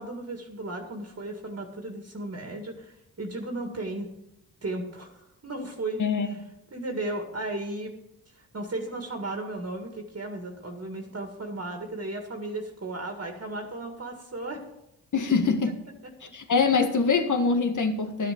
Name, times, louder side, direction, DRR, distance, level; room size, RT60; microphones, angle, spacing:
voice 1, 0.0-4.1 4.6-5.2 5.4-6.0 6.7-7.9 8.3-14.6 16.2-16.3, right 2 dB, 40° right, 3 dB, 2.0 m, -35 dB
voice 2, 15.1-15.8 16.3-18.3, left 5 dB, 55° left, 5 dB, 1.8 m, -24 dB
11.5 x 6.7 x 6.8 m, 0.85 s
cardioid pair, 55°, 36 cm